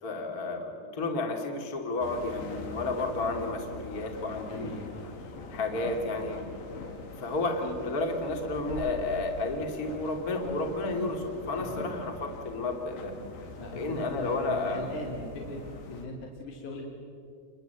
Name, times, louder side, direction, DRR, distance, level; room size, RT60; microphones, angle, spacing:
voice 1, 0.0-4.9 5.5-6.4 7.2-13.1 13.7-14.9, left 2 dB, 25° left, 3 dB, 2.6 m, -31 dB
sound 1, 2.0-16.1, left 4 dB, 80° left, 4.3 m, -43 dB
voice 2, 4.5-5.1 11.6-12.3 13.6-15.6 15.9-16.9, left 2 dB, 55° left, -1 dB, 3.8 m, -40 dB
28.5 x 23.5 x 8.1 m, 2.4 s
omnidirectional pair, 4.5 m